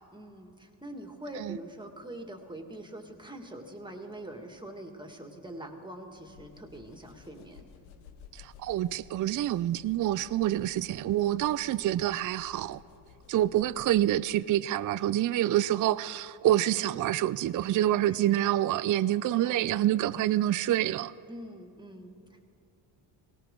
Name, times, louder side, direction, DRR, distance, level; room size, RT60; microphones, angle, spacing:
voice 1, 0.1-7.7 19.3-19.6 21.3-22.4, right 1 dB, 10° right, 4 dB, 2.0 m, -44 dB
sound 1, 6.2-14.4, left 6 dB, 85° left, 1.0 m, -55 dB
voice 2, 8.3-12.8 13.3-21.1, right 13 dB, 45° right, 16 dB, 0.4 m, -27 dB
18.5 x 17.0 x 3.8 m, 2.7 s
supercardioid pair, 60°, 48 cm